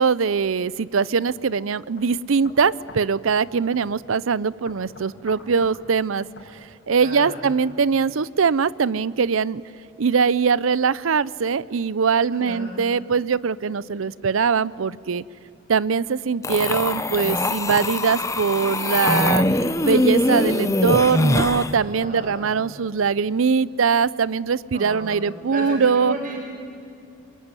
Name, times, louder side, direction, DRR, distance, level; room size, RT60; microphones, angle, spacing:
voice 1, 0.0-6.3 6.9-9.6 10.0-15.2 15.7-26.2, right 5 dB, 90° right, 20 dB, 0.6 m, -22 dB
sound 1, 1.3-1.4 2.0-2.1 2.4-3.4 3.7-3.9 4.7-5.8 6.4-6.5, left 2 dB, 65° left, 6.2 m, -44 dB
voice 2, 7.0-7.4 12.3-12.7 21.8-22.6 24.7-26.4, right 1 dB, 40° right, -1 dB, 5.5 m, -34 dB
sound 2, 16.4-21.7, left 1 dB, 15° left, 0.9 m, -22 dB
27.5 x 21.5 x 9.8 m, 2.5 s
head